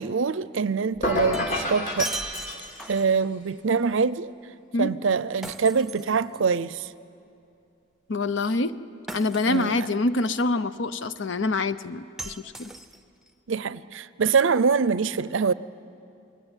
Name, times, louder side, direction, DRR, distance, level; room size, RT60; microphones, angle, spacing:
voice 1, 0.0-2.1 2.9-4.3 4.8-6.9 9.5-9.7 13.5-15.5, right 5 dB, 70° right, 0.6 m, -24 dB
Shatter, 0.9-3.2 5.4-6.7 9.1-9.9 12.2-13.3, right 2 dB, ahead, 0.7 m, -38 dB
sound 1, 1.0-3.1, left 2 dB, 40° left, 2.7 m, -30 dB
voice 2, 8.1-8.8 9.1-12.7, left 2 dB, 65° left, 0.8 m, -26 dB
29.5 x 21.0 x 9.1 m
head